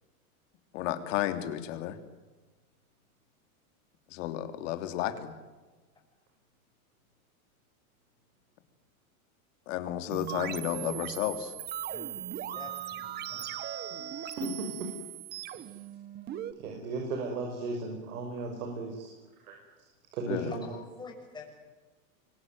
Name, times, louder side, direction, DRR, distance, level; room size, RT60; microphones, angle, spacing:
voice 1, 0.7-2.0 4.1-5.3 9.7-11.5 20.3-20.5, left 12 dB, 55° left, 9 dB, 3.2 m, -32 dB
sound 1, 10.1-16.5, right 10 dB, 20° right, 1.3 m, -38 dB
voice 2, 11.9-12.2 12.5-13.5 20.5-21.5, left 5 dB, 10° left, -1 dB, 6.7 m, -46 dB
voice 3, 14.3-14.9 15.4-15.7 16.6-19.1 19.4-19.9 20.1-20.6, right 3 dB, 75° right, 2 dB, 6.2 m, -36 dB
26.0 x 24.5 x 9.4 m, 1.2 s
supercardioid pair, 155°, 44 cm